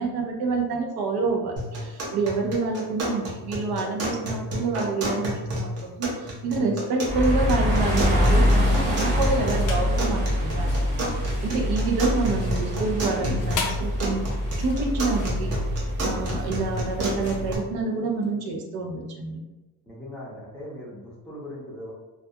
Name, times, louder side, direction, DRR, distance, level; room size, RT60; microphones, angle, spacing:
voice 1, 0.0-10.7 11.4-14.3 14.6-15.6 16.0-19.4, right 3 dB, 80° right, 1 dB, 0.6 m, -27 dB
sound 1, 1.6-17.6, equal, 45° right, 0.7 m, -31 dB
voice 2, 4.1-4.5 11.8-12.1 19.8-21.9, left 1 dB, ahead, -5 dB, 0.5 m, -40 dB
sound 2, 7.1-17.6, left 1 dB, 20° right, 0.9 m, -25 dB
sound 3, 9.4-10.0 10.5-18.3, left 4 dB, 60° left, 0.5 m, -38 dB
2.4 x 2.2 x 2.7 m, 1.1 s
cardioid pair, 145°, 36 cm